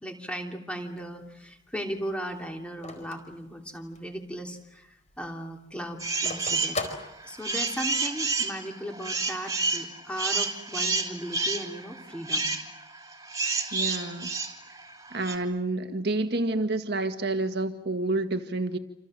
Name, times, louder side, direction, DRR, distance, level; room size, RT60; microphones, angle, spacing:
voice 1, 0.0-6.8 7.2-12.5, equal, 5° left, 2 dB, 3.1 m, -37 dB
Telephone, 0.8-4.2 4.6-4.7 4.9-7.8, left 3 dB, 35° left, 4.5 m, -39 dB
sound 1, 6.0-6.8 7.2-15.4, right 3 dB, 20° right, 3.1 m, -29 dB
voice 2, 13.7-14.3 15.1-18.8, right 2 dB, 55° right, 7 dB, 1.8 m, -29 dB
29.0 x 27.0 x 7.6 m, 0.87 s
head